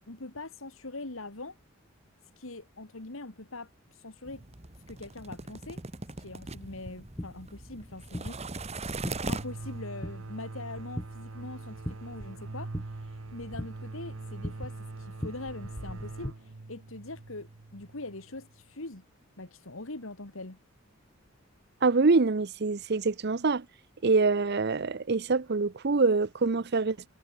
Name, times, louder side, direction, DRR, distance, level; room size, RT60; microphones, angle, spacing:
voice 1, 0.1-1.6 2.4-4.4 4.9-5.8 6.2-8.4 9.3-19.0 19.4-20.6, left 2 dB, 70° left, 2.3 m, -42 dB
sound 1, 4.3-9.8, right 2 dB, 30° right, 1.6 m, -39 dB
sound 2, 6.5-16.3, equal, 15° left, 1.7 m, -42 dB
sound 3, 9.1-18.6, right 2 dB, 75° right, 1.0 m, -43 dB
voice 2, 21.8-23.6 24.0-27.0, right 4 dB, 50° right, 0.7 m, -25 dB
head